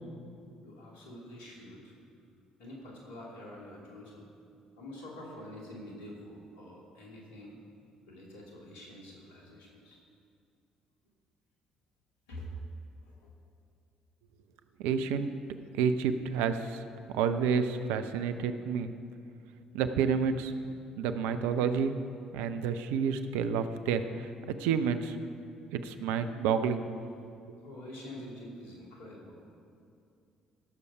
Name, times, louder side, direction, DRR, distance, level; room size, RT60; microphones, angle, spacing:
voice 1, 0.6-1.9 2.6-4.3 4.8-7.6 8.1-10.0 12.3-12.5 13.0-13.3 27.6-29.4, left 1 dB, 75° left, -2 dB, 2.5 m, -46 dB
voice 2, 14.8-15.3 15.7-16.8 17.1-18.9 19.7-20.5 21.0-21.9 22.3-25.2 25.7-26.9, right 6 dB, 70° right, 9 dB, 0.6 m, -29 dB
16.5 x 6.9 x 4.9 m, 2.4 s
figure-of-eight pair, 50°, 3 cm